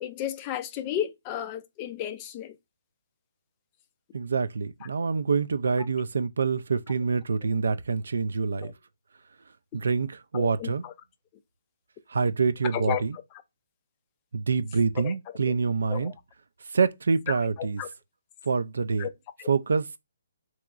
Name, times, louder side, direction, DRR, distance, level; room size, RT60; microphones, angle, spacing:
voice 1, 0.0-2.5 8.6-8.7 10.3-10.9 12.7-13.0 15.0-15.1 15.9-16.1 17.3-17.9 19.0-19.1 19.4-19.5, left 11 dB, 20° left, 0.3 m, -33 dB
voice 2, 4.1-8.7 9.7-10.8 12.1-13.1 14.3-16.1 16.7-17.8 18.5-19.1 19.5-19.9, right 5 dB, 80° right, 0.3 m, -26 dB
3.5 x 3.0 x 2.4 m
hypercardioid pair, 165°, 0 cm